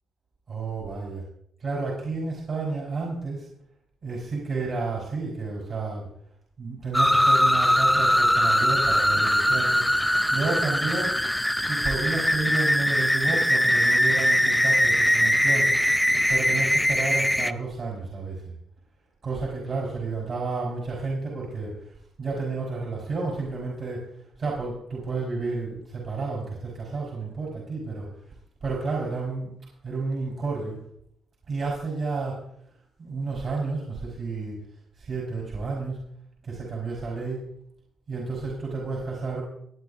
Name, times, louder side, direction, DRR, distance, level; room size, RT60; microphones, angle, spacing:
voice 1, 0.5-1.2 1.6-3.5 4.0-6.1 6.6-9.8 10.3-11.1 11.7-15.7 16.3-18.5 19.2-24.1 24.4-28.3 28.6-29.5 29.8-30.8 31.5-32.4 33.0-34.6 35.0-36.0 36.4-37.4 38.1-39.4, right 3 dB, 50° right, -4 dB, 4.4 m, -31 dB
sound 1, 6.9-17.5, equal, 5° left, 0.5 m, -21 dB
24.0 x 8.9 x 2.7 m, 0.72 s
cardioid pair, 90°, 0 cm